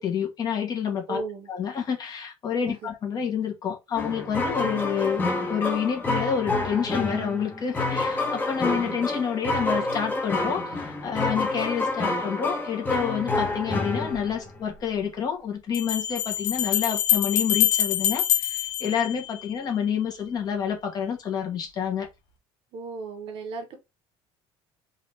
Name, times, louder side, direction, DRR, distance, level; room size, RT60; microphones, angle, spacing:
voice 1, 0.0-1.2 1.5-5.2 5.5-22.1, left 7 dB, 35° left, 1.3 m, -28 dB
voice 2, 1.1-1.5 2.6-2.9 4.6-4.9 8.6-9.2 22.7-23.8, right 4 dB, 60° right, 1.2 m, -36 dB
sound 1, 4.0-14.6, left 2 dB, 15° left, 1.0 m, -28 dB
Bell, 14.1-14.2 15.7-19.7, left 12 dB, 80° left, 1.1 m, -25 dB
3.9 x 2.7 x 3.3 m
cardioid pair, 140°, 11 cm